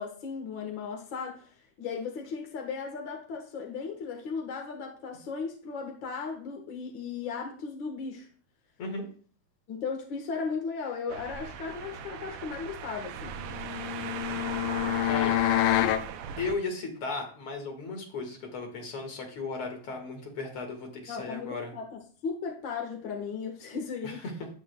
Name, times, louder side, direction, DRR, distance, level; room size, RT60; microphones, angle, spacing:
voice 1, 0.0-1.5 1.8-8.3 9.7-13.4 21.1-24.2, left 5 dB, 60° left, 1 dB, 1.2 m, -36 dB
sound 1, 11.1-16.5, right 8 dB, 85° right, 1.8 m, -39 dB
sound 2, 13.5-16.1, left 13 dB, 80° left, 2.2 m, -27 dB
voice 2, 15.0-15.4 16.4-21.7 24.0-24.3, left 3 dB, 45° left, 3 dB, 2.2 m, -35 dB
11.5 x 8.8 x 2.2 m, 0.43 s
omnidirectional pair, 4.2 m